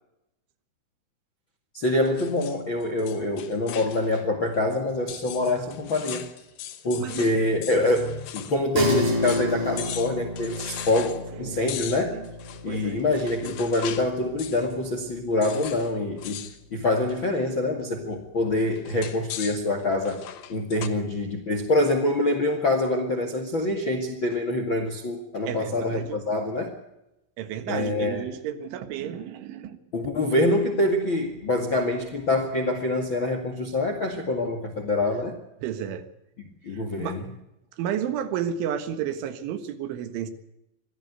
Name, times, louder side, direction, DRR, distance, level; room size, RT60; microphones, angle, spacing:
voice 1, 1.7-6.3 6.8-12.2 12.6-16.4 16.7-20.2 20.5-26.7 27.7-28.2 29.9-35.4 36.6-37.2, left 2 dB, 45° left, 7 dB, 1.6 m, -25 dB
sound 1, 2.0-4.3 4.5-4.6 5.1-8.6 8.9-9.0 9.2-9.5 9.8-11.2 11.7-14.1 14.4-14.7 15.4-16.6 16.9-17.2 18.8-20.9, left 11 dB, 65° left, 2.4 m, -39 dB
sound 2, 8.8-18.5, left 1 dB, 35° right, 8.3 m, -33 dB
voice 2, 11.3-11.8 12.1-12.3 12.7-13.0 20.9-21.0 25.5-26.2 27.4-29.8 35.6-36.1 36.7-37.2 37.8-40.3, right 9 dB, 75° right, 11 dB, 3.9 m, -32 dB
24.0 x 15.5 x 8.1 m, 0.89 s
omnidirectional pair, 5.7 m